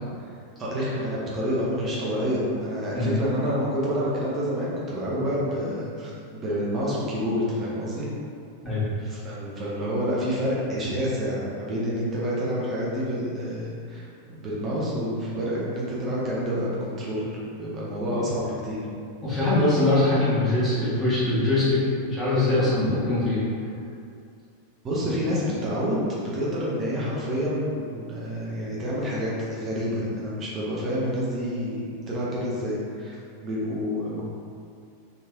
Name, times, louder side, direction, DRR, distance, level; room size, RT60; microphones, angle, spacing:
voice 1, 0.6-8.1 9.0-17.3 17.6-18.8 24.8-33.2 33.4-34.2, equal, 25° right, -7 dB, 0.6 m, -28 dB
voice 2, 19.2-23.4, left 2 dB, 10° left, -13 dB, 1.3 m, -22 dB
3.1 x 2.7 x 2.3 m, 2.4 s
figure-of-eight pair, 90°, 0 cm